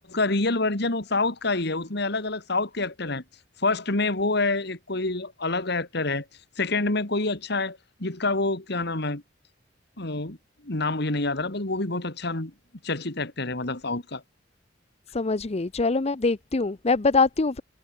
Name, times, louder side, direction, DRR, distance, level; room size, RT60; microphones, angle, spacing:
voice 1, 0.1-3.2 3.6-6.3 6.6-9.2 10.0-10.4 10.6-12.5 12.8-14.2, left 2 dB, 60° left, 2.7 m, -27 dB
voice 2, 15.1-17.6, left 3 dB, 35° left, 0.7 m, -23 dB
head